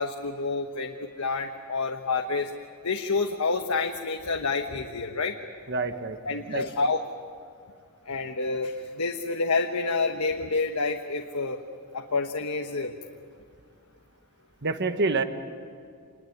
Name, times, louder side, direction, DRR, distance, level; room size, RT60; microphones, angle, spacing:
voice 1, 0.0-2.5 2.8-5.3 6.2-7.0 8.1-11.6 11.9-12.9, left 3 dB, 80° left, 3 dB, 1.2 m, -28 dB
voice 2, 5.7-6.7 14.6-15.2, right 3 dB, 50° right, 9 dB, 1.3 m, -28 dB
27.0 x 21.0 x 9.4 m, 2.2 s
head